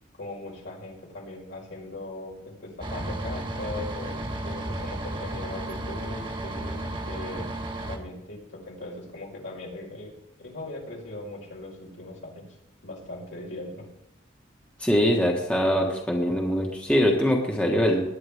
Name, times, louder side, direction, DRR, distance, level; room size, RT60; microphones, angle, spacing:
voice 1, 0.2-7.5 7.9-10.1 10.4-12.4 12.8-13.8, left 2 dB, 70° left, -2 dB, 4.9 m, -39 dB
sound 1, 2.8-8.0, right 1 dB, 25° right, 1.5 m, -33 dB
voice 2, 14.8-18.0, equal, 5° left, -1 dB, 1.5 m, -23 dB
19.5 x 10.5 x 3.6 m, 0.81 s
head